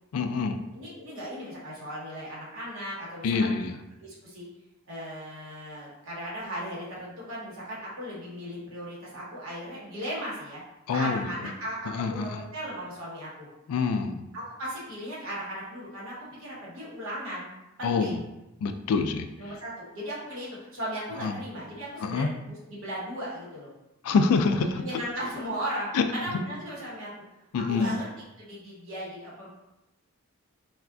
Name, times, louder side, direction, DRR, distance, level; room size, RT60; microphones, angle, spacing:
voice 1, 0.1-0.6 3.2-3.7 10.9-11.3 11.9-12.4 13.7-14.2 17.8-18.2 18.6-19.3 21.2-21.4 22.0-22.3 24.0-24.8 25.9-26.0 27.5-27.9, left 4 dB, 75° left, 8 dB, 0.3 m, -26 dB
voice 2, 0.7-3.5 4.0-4.5 4.9-10.6 10.9-13.5 14.3-17.5 17.8-18.2 19.4-23.7 24.8-27.1 27.7-28.1 28.4-29.5, equal, 60° right, -6 dB, 1.1 m, -37 dB
3.6 x 2.3 x 2.3 m, 0.93 s
head